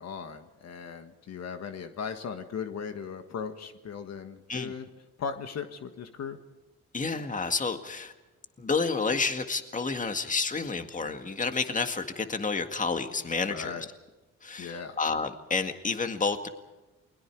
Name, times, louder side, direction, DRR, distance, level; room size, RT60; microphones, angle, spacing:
voice 1, 0.0-4.9 5.2-6.4 13.4-13.8 14.6-15.0, left 6 dB, 60° left, 7 dB, 1.6 m, -37 dB
voice 2, 6.9-8.1 8.6-13.9 14.4-16.5, left 4 dB, 25° left, 7 dB, 1.9 m, -30 dB
29.5 x 21.5 x 4.8 m, 1.1 s
cardioid pair, 90°, 30 cm